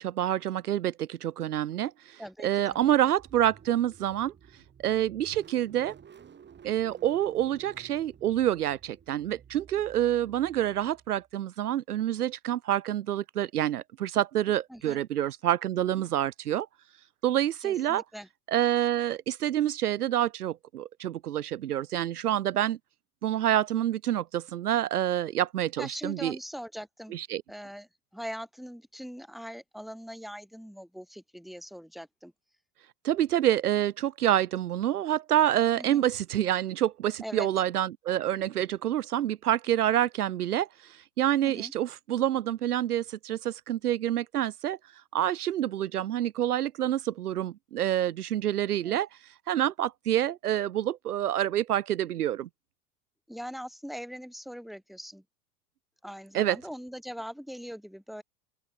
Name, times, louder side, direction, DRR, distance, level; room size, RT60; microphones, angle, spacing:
voice 1, 0.0-4.3 4.8-6.0 6.6-16.7 17.2-18.0 18.5-22.8 23.2-26.4 27.1-27.4 33.0-44.8 45.1-49.1 49.5-52.5 56.3-56.6, right 11 dB, 70° right, 1.1 m, -27 dB
voice 2, 2.2-2.9 14.7-15.0 17.6-18.3 25.8-27.1 27.5-32.3 35.8-36.1 37.2-37.5 41.4-41.7 48.8-49.0 53.3-55.2 56.0-58.2, equal, ahead, 4.7 m, -41 dB
Car / Engine starting, 2.5-11.3, right 7 dB, 20° right, 4.1 m, -54 dB
open air
figure-of-eight pair, 85°, 47 cm